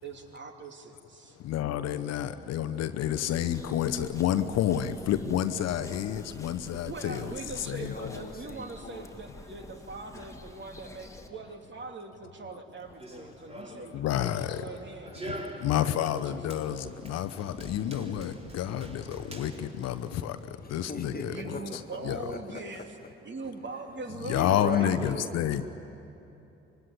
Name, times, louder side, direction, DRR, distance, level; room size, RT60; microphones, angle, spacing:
voice 1, 0.0-1.4 6.9-15.5 15.8-16.6 21.1-23.0 23.2-25.3, right 3 dB, 35° right, 3.0 m, -42 dB
voice 2, 1.4-7.3 7.6-8.2 13.9-14.6 15.3-22.2 24.2-25.7, left 10 dB, 55° left, 0.9 m, -30 dB
sound 1, 3.3-11.3, left 1 dB, 10° left, 2.2 m, -48 dB
voice 3, 7.7-9.2 20.6-21.8 22.1-22.9 24.3-25.3, left 4 dB, 30° left, 2.0 m, -39 dB
Run, 12.8-20.5, right 1 dB, 20° right, 4.4 m, -45 dB
25.0 x 21.5 x 10.0 m
figure-of-eight pair, 40°, 30 cm